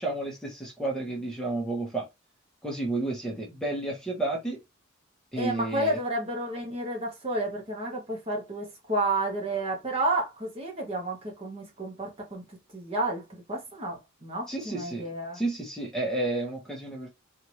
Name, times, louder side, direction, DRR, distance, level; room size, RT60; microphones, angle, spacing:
voice 1, 0.0-2.1 2.6-4.6 5.3-6.0 14.5-15.1 15.3-17.1, right 2 dB, 5° left, 1.2 m, -31 dB
voice 2, 5.4-13.2 13.5-15.4, right 1 dB, 30° right, 1.3 m, -31 dB
4.3 x 2.8 x 3.1 m
head